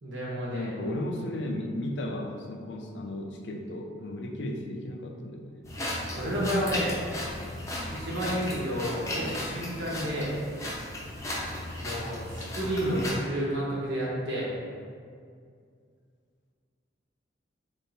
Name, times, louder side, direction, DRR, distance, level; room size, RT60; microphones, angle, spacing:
voice 1, 0.0-0.7 6.1-7.0 7.9-10.3 11.8-14.6, equal, 85° right, -5 dB, 1.3 m, -30 dB
voice 2, 0.5-5.6, left 1 dB, 70° left, 3 dB, 0.5 m, -35 dB
sound 1, 5.6-13.1, left 1 dB, 15° left, 0.6 m, -35 dB
3.6 x 3.6 x 4.0 m, 2.2 s
head